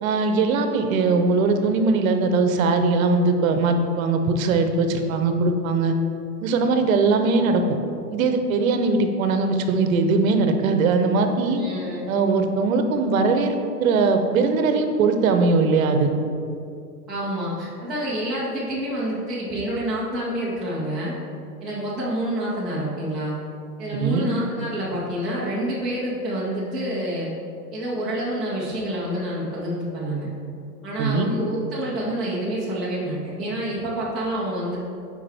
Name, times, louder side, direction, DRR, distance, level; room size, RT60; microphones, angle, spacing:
voice 1, 0.0-5.9 6.4-7.6 8.1-11.6 12.1-16.1 23.9-24.3 31.0-31.3, right 3 dB, 60° right, 6 dB, 0.9 m, -20 dB
voice 2, 11.6-12.1 17.1-21.1 21.6-23.4 23.8-27.3 27.7-30.3 30.8-34.8, right 1 dB, ahead, -11 dB, 0.3 m, -28 dB
8.5 x 4.8 x 3.5 m, 2.5 s
hypercardioid pair, 135°, 47 cm